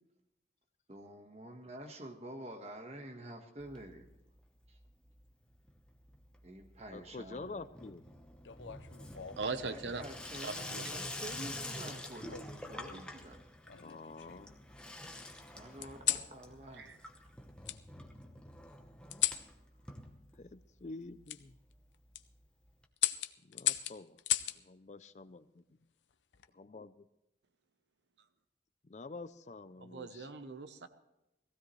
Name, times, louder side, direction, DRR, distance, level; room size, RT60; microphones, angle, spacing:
voice 1, 0.9-4.1 4.7-4.8 6.4-7.7 9.6-13.4 15.5-16.9, right 1 dB, 35° right, 4 dB, 1.4 m, -48 dB
Water tap faucet / Sink (filling or washing), 3.6-4.4 4.6-5.2 5.5-20.8 21.1-21.2 21.4-21.5 21.7-21.8 22.8-22.9, left 1 dB, 5° left, 1.0 m, -47 dB
voice 2, 6.9-8.0 13.8-14.5 20.4-21.5 23.5-24.2 24.6-25.6 26.6-27.0 28.9-30.3, left 3 dB, 40° left, 14 dB, 0.4 m, -47 dB
sound 1, 8.4-9.6 10.6-11.0 12.3-13.0 13.7-14.6 15.8-16.3 17.6-17.8 19.1-19.5 21.3-21.4 21.9-22.2 23.0-24.6 26.1-26.5, left 13 dB, 90° left, 0.6 m, -36 dB
voice 3, 9.4-10.0 10.4-10.9 16.7-17.0 29.8-30.9, right 4 dB, 80° right, 10 dB, 0.9 m, -40 dB
18.5 x 15.5 x 3.2 m, 0.92 s
head